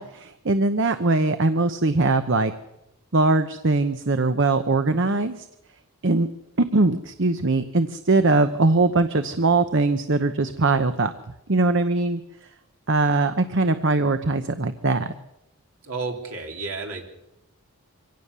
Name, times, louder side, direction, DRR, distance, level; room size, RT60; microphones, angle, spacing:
voice 1, 0.0-2.5 3.1-5.5 6.0-6.3 6.6-11.1 11.5-12.2 12.9-15.1, right 3 dB, 55° right, 10 dB, 0.9 m, -21 dB
voice 2, 15.8-17.1, right 4 dB, 70° right, 2 dB, 3.5 m, -31 dB
24.5 x 17.0 x 6.9 m, 0.89 s
head